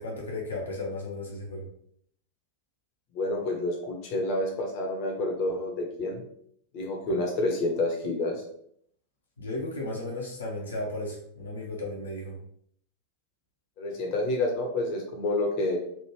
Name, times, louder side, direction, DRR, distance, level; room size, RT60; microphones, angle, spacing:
voice 1, 0.0-1.7 9.4-12.3, left 2 dB, 75° left, -3 dB, 0.8 m, -34 dB
voice 2, 3.1-6.2 6.7-8.4 13.8-15.8, left 2 dB, 45° left, 1 dB, 0.8 m, -29 dB
3.3 x 2.5 x 3.0 m, 0.66 s
figure-of-eight pair, 90°, 0 cm